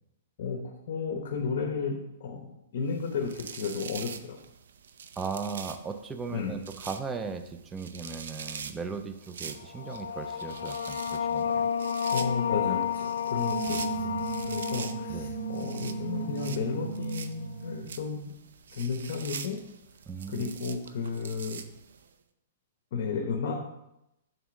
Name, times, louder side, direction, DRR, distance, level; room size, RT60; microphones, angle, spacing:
voice 1, 0.4-4.4 6.3-6.6 12.1-14.1 14.5-18.4 18.7-19.6 20.3-21.6 22.9-23.5, left 5 dB, 55° left, 3 dB, 0.9 m, -33 dB
sound 1, 2.9-22.1, right 6 dB, 80° right, 0.6 m, -45 dB
voice 2, 5.2-11.6 13.7-14.4 15.1-15.3 20.1-20.5, right 5 dB, 10° right, 7 dB, 0.4 m, -38 dB
sound 2, 9.6-16.9, left 8 dB, 75° left, 0.5 m, -32 dB
sound 3, 13.3-18.0, right 7 dB, 60° right, 1.0 m, -36 dB
7.3 x 3.4 x 6.2 m, 0.87 s
hypercardioid pair, 165°, 0 cm